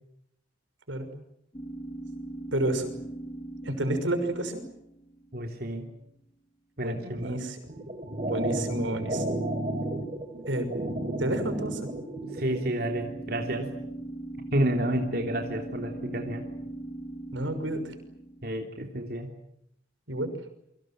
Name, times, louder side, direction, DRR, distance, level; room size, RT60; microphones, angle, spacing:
sound 1, 1.5-5.6 11.7-18.7, right 2 dB, 25° left, 1.6 m, -41 dB
voice 1, 2.5-2.9 3.6-4.6 6.8-7.6 8.3-9.3 10.5-10.7 11.2-11.8 17.3-17.9 20.1-20.3, right 1 dB, 85° right, 8 dB, 6.1 m, -30 dB
voice 2, 5.3-5.8 6.8-7.3 12.2-13.7 14.5-16.4 18.4-19.3, right 1 dB, 50° right, 3 dB, 3.3 m, -30 dB
sound 2, 7.7-12.7, right 1 dB, 35° right, 3.7 m, -32 dB
29.0 x 24.5 x 7.8 m, 0.78 s
head